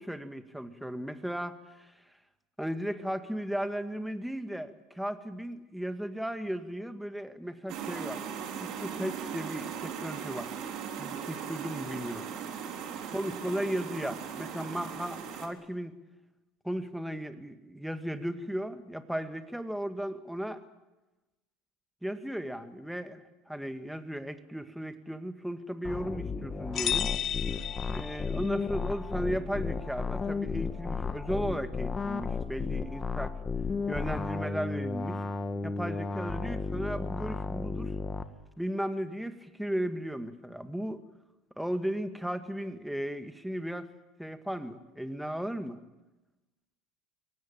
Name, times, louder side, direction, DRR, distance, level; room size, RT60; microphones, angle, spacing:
voice 1, 0.0-1.9 2.6-8.3 8.6-10.5 11.0-12.3 13.1-15.9 16.6-20.6 22.0-27.1 27.9-33.3 33.9-35.2 35.6-37.9 38.6-41.0 41.6-43.9 44.2-45.8, equal, ahead, 9 dB, 1.9 m, -35 dB
sound 1, 7.7-15.5, right 7 dB, 55° right, 3.7 m, -38 dB
sound 2, 25.8-38.2, left 4 dB, 25° left, 1.8 m, -34 dB
sound 3, 26.7-28.6, left 10 dB, 45° left, 1.0 m, -33 dB
23.0 x 18.0 x 9.1 m, 1.1 s
supercardioid pair, 100°, 0 cm